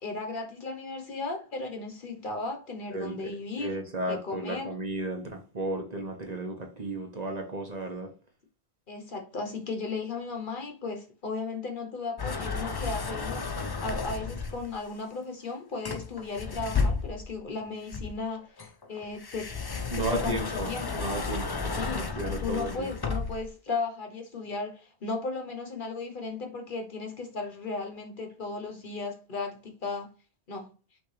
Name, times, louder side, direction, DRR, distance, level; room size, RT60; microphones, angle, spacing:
voice 1, 0.0-3.8 4.1-4.7 8.9-19.5 20.0-20.9 21.7-22.1 22.4-30.1 30.5-30.7, left 3 dB, 50° left, 1.1 m, -36 dB
voice 2, 2.9-8.1 19.9-22.9, right 1 dB, 40° right, 1.0 m, -34 dB
sound 1, 12.2-14.7 15.9-17.4 17.9-23.5, left 4 dB, 35° left, 0.4 m, -33 dB
5.8 x 2.7 x 3.2 m
omnidirectional pair, 1.1 m